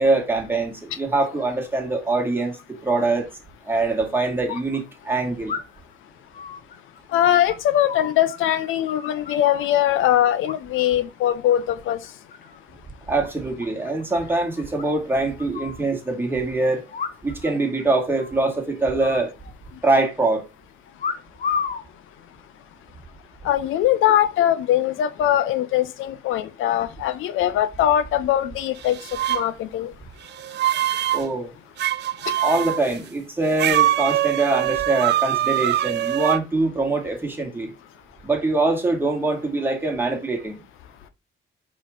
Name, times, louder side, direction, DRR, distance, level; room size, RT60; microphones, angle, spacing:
voice 1, 0.0-3.3 3.7-5.6 13.1-16.9 17.2-19.3 19.8-20.4 31.1-31.5 32.4-37.7 38.2-40.6, right 2 dB, 10° right, 2.1 m, -23 dB
sound 1, 3.7-3.8 5.5-5.9 6.3-8.4 8.6-9.7 10.5-11.0 11.3-11.7 12.0-12.6 12.9-13.0 13.2-13.3 13.6-13.7 14.0-14.1 14.8-15.8 16.9-17.5 17.8-17.9 18.2-18.5 19.0-19.9 21.0-21.9 22.6-23.0, left 6 dB, 45° left, 0.9 m, -32 dB
voice 2, 7.1-12.0 23.4-29.0 29.3-29.9, left 11 dB, 85° left, 0.6 m, -21 dB
sound 2, 28.8-29.4 30.3-31.3 31.8-32.8 33.6-36.4, right 13 dB, 60° right, 0.4 m, -23 dB
4.9 x 3.8 x 5.0 m
cardioid pair, 90°, 20 cm